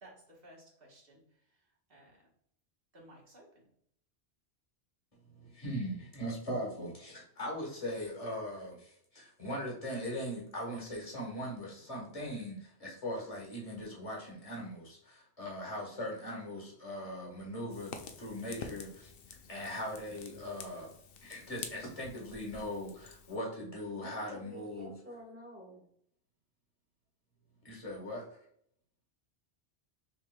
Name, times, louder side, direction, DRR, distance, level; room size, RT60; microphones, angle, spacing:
voice 1, 0.0-2.3 2.9-3.6, right 1 dB, 60° right, 1.5 m, -58 dB
voice 2, 5.3-19.1 19.5-20.9 21.2-24.9 27.6-28.2, equal, 30° left, 1.5 m, -40 dB
Fire, 17.7-23.4, left 6 dB, 65° left, 0.7 m, -48 dB
voice 3, 23.9-25.9, equal, 15° right, 1.3 m, -50 dB
6.0 x 3.3 x 2.3 m
omnidirectional pair, 1.1 m